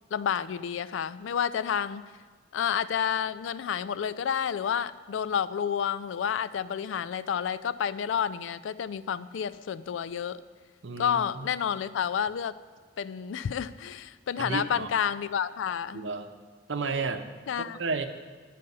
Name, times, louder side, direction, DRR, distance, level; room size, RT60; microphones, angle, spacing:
voice 1, 0.1-2.1 2.5-10.4 11.0-12.5 13.0-16.1 17.5-17.8, left 8 dB, 85° left, 16 dB, 0.3 m, -30 dB
voice 2, 10.8-11.5 14.4-14.9 15.9-16.3 16.7-17.2 17.6-18.1, right 4 dB, 75° right, 8 dB, 0.7 m, -32 dB
9.4 x 6.8 x 5.4 m, 1.5 s
head